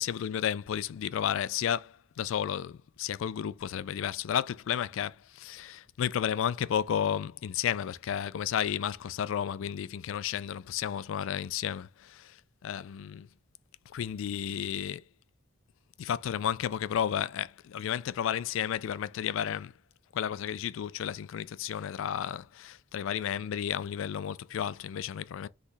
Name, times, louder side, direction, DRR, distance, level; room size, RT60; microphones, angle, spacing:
voice 1, 0.0-12.4 12.6-13.3 13.9-15.0 16.0-19.7 20.1-25.5, left 9 dB, 65° left, 0.3 m, -32 dB
4.0 x 3.0 x 4.0 m
head